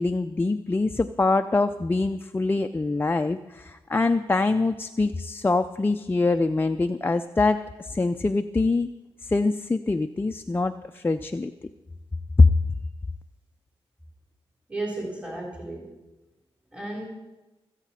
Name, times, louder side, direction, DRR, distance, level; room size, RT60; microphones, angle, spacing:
voice 1, 0.0-8.9 9.2-11.5 12.4-12.5, left 3 dB, 20° left, 7 dB, 0.5 m, -24 dB
voice 2, 14.7-15.9 16.7-17.1, right 2 dB, 10° right, -3 dB, 3.6 m, -33 dB
23.0 x 8.2 x 4.3 m, 1.1 s
cardioid pair, 65°, 11 cm